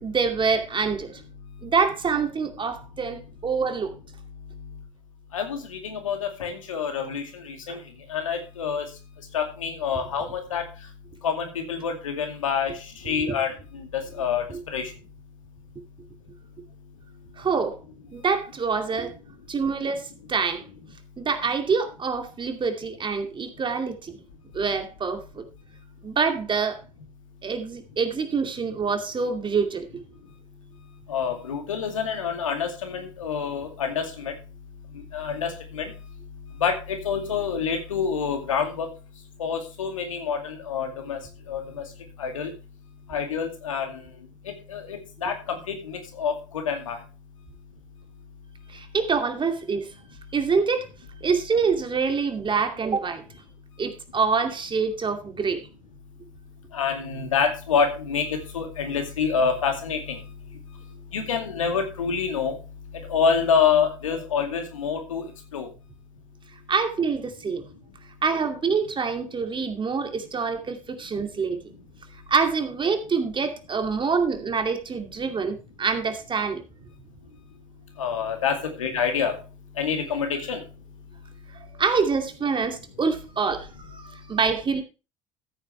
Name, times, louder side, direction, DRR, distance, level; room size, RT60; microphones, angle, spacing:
voice 1, 0.0-1.1 1.6-3.9 7.7-7.8 13.1-13.4 14.5-14.6 17.4-17.8 18.1-19.1 19.5-20.6 21.2-24.2 24.5-25.4 26.0-26.8 27.4-29.9 48.7-49.9 50.3-50.9 51.2-53.2 53.8-55.7 66.7-67.6 68.2-71.6 72.3-76.6 81.7-84.8, right 5 dB, 30° right, 6 dB, 2.5 m, -26 dB
voice 2, 5.3-7.8 8.1-8.8 9.3-10.7 11.2-12.8 13.0-14.4 14.7-14.9 31.1-34.3 35.1-35.9 36.6-38.9 39.4-41.2 41.5-41.8 42.2-42.5 43.1-44.0 44.7-47.0 56.7-60.2 61.1-62.6 63.1-65.2 65.5-65.7 78.0-79.4 79.8-80.6, left 6 dB, 80° left, 5 dB, 2.4 m, -27 dB
14.0 x 9.0 x 3.3 m, 0.31 s
hypercardioid pair, 65°, 17 cm